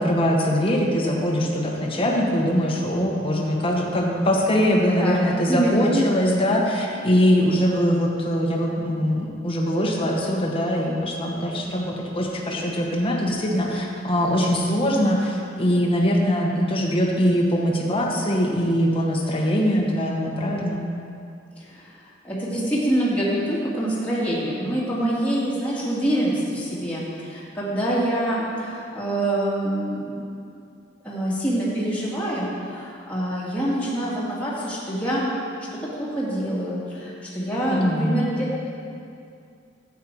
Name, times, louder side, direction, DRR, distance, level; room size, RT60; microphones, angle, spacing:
voice 1, 0.0-20.8 37.7-38.2, equal, 30° left, -2 dB, 1.3 m, -22 dB
voice 2, 4.8-5.2 5.5-5.9 21.6-21.9 22.2-30.1 31.0-35.3 35.7-38.7, right 1 dB, 5° left, -9 dB, 2.2 m, -25 dB
11.0 x 8.4 x 4.8 m, 2.5 s
head